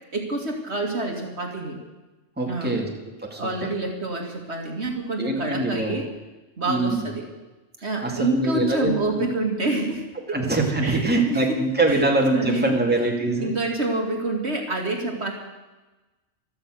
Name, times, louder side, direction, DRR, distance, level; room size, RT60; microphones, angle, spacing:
voice 1, 0.1-1.8 2.4-2.8 3.3-6.1 6.6-7.2 7.8-10.4 10.8-11.5 11.9-12.1 12.3-12.7 13.4-15.3, right 2 dB, 55° right, 2 dB, 2.5 m, -27 dB
voice 2, 2.4-2.9 3.3-3.7 5.2-6.0 6.6-7.1 8.0-9.2 10.3-13.5, right 2 dB, 5° right, 0 dB, 2.3 m, -23 dB
15.5 x 13.5 x 6.4 m, 1.1 s
omnidirectional pair, 1.4 m